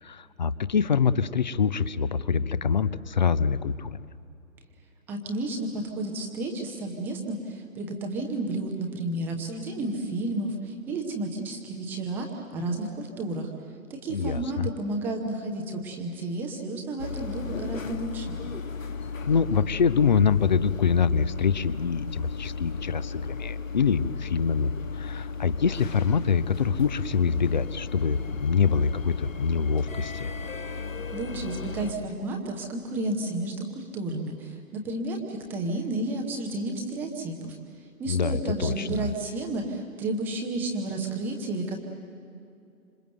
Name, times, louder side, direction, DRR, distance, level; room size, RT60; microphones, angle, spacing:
voice 1, 0.0-4.0 14.1-14.7 19.3-30.3 38.1-39.1, left 6 dB, 30° left, 17 dB, 0.7 m, -25 dB
voice 2, 5.1-13.5 13.9-18.4 31.1-37.6 38.0-41.8, right 2 dB, 5° right, 1 dB, 0.8 m, -32 dB
sound 1, 17.0-31.9, left 5 dB, 60° left, 1.8 m, -35 dB
27.0 x 26.5 x 7.9 m, 2.6 s
figure-of-eight pair, 135°, 44 cm